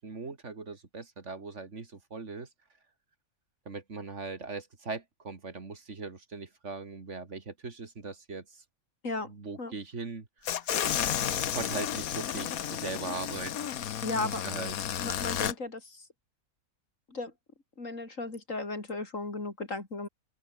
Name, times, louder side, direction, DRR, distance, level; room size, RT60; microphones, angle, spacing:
voice 1, 0.0-2.5 3.7-8.6 9.3-10.7 11.5-13.8 14.2-14.8, right 4 dB, 55° right, 2.5 m, -40 dB
sound 1, 10.4-15.5, left 10 dB, 85° left, 1.4 m, -32 dB
voice 2, 14.0-14.4 15.0-16.1 17.1-17.3 17.8-20.1, left 3 dB, 65° left, 4.3 m, -35 dB
open air
omnidirectional pair, 1.5 m